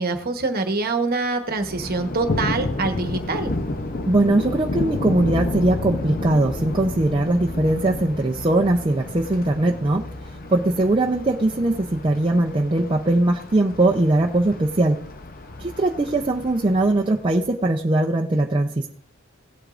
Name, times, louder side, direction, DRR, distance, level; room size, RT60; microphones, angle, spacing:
voice 1, 0.0-3.5, right 3 dB, 45° right, 6 dB, 1.1 m, -25 dB
Thunder, 1.6-17.5, left 2 dB, 45° left, 0.7 m, -31 dB
voice 2, 4.1-15.0 15.6-18.9, right 2 dB, 25° right, 0 dB, 0.5 m, -20 dB
17.0 x 8.0 x 2.5 m, 0.62 s
head